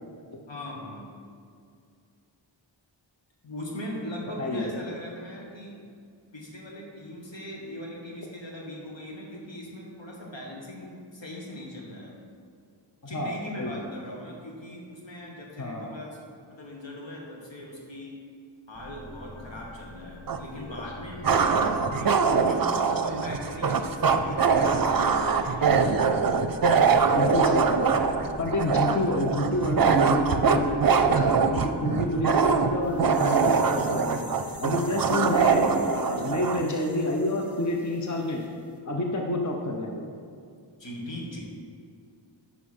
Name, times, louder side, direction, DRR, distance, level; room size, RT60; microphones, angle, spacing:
voice 1, 0.5-1.2 3.4-5.8 6.3-12.2 13.0-16.2 16.5-18.2 18.7-21.3 21.9-22.7 23.0-25.9 40.8-41.4, left 1 dB, 75° left, -2 dB, 1.6 m, -39 dB
voice 2, 4.4-4.7 13.1-13.7 15.6-15.9 27.1-28.0 28.4-30.7 31.0-34.3 34.6-38.5 38.9-40.0, left 2 dB, 40° left, 1 dB, 0.8 m, -29 dB
sound 1, 18.7-33.7, equal, 60° left, 1.7 m, -45 dB
sound 2, 20.3-20.4 21.2-36.6, right 5 dB, 50° right, 0.6 m, -23 dB
sound 3, 32.8-38.5 38.7-38.8, right 1 dB, 5° right, 1.4 m, -47 dB
9.5 x 5.7 x 4.3 m, 2.3 s
wide cardioid pair, 60°, 44 cm